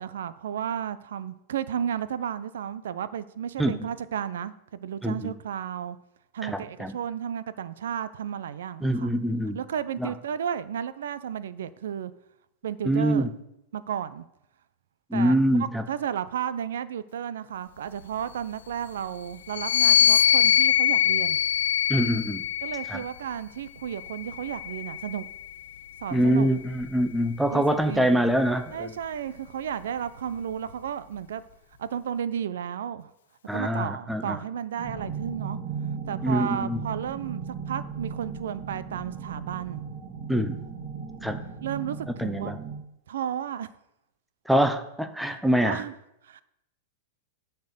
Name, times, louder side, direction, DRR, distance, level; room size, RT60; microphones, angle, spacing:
voice 1, 0.0-6.0 6.3-9.1 9.5-12.1 12.6-13.3 13.7-14.2 15.1-21.4 22.6-25.3 26.0-26.5 27.5-28.3 28.7-31.4 31.8-33.1 33.5-35.6 36.1-39.8 41.6-42.5 43.1-43.7 45.2-45.9 46.2-46.4, right 9 dB, 90° right, 15 dB, 0.6 m, -33 dB
voice 2, 5.0-5.3 6.4-6.9 8.8-9.6 10.0-10.1 12.8-13.3 15.1-15.8 21.9-22.4 22.9-23.0 26.1-28.9 33.5-34.4 36.2-36.8 40.3-40.6 41.2-41.4 42.2-42.6 44.5-45.8, right 1 dB, ahead, 8 dB, 0.5 m, -24 dB
sound 1, 19.5-23.1 23.9-25.5, left 10 dB, 75° left, 0.5 m, -23 dB
sound 2, 34.8-42.8, right 6 dB, 35° right, 2.3 m, -36 dB
10.5 x 4.4 x 6.8 m, 0.84 s
supercardioid pair, 170°, 0 cm